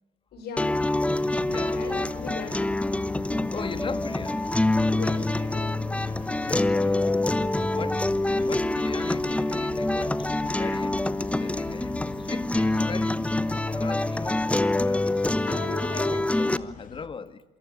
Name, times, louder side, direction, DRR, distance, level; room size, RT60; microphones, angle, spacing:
voice 1, 0.3-0.8 1.3-2.7 4.9-5.8 15.5-16.2, left 5 dB, 70° left, 5.7 m, -38 dB
sound 1, 0.6-16.6, left 2 dB, 5° left, 0.9 m, -26 dB
sound 2, 0.7-17.1, left 7 dB, 50° left, 1.9 m, -43 dB
voice 2, 1.4-2.5 3.5-4.6 6.4-7.2 7.6-8.1 8.4-15.1 15.5-17.4, left 5 dB, 30° left, 2.0 m, -40 dB
27.0 x 25.0 x 6.9 m
cardioid pair, 110°, 17 cm